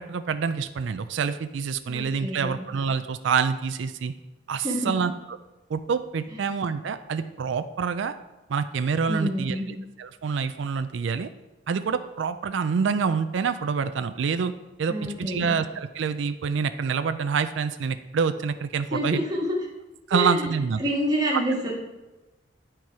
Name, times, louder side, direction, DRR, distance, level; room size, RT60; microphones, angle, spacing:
voice 1, 0.0-4.1 4.5-5.1 5.7-8.1 8.5-9.6 10.0-11.3 11.7-14.5 14.8-19.2 20.1-20.8 21.3-21.4, right 6 dB, 70° right, 10 dB, 0.4 m, -26 dB
voice 2, 1.9-2.6 4.6-4.9 6.3-6.4 9.1-9.7 14.9-15.5 18.9-19.7 20.1-20.5 20.8-21.7, equal, 20° right, -3 dB, 1.7 m, -28 dB
9.2 x 4.4 x 4.7 m, 1.0 s
head